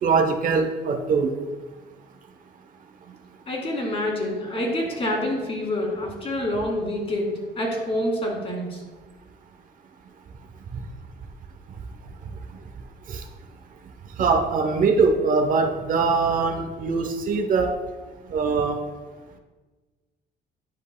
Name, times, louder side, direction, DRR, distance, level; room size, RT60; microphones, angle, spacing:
voice 1, 0.0-1.3 13.1-13.2 14.2-17.7 18.3-18.8, right 4 dB, 55° right, 5 dB, 0.8 m, -22 dB
voice 2, 3.5-8.8, left 1 dB, 35° left, -1 dB, 2.1 m, -27 dB
10.5 x 5.3 x 2.2 m, 1.3 s
cardioid pair, 110°, 17 cm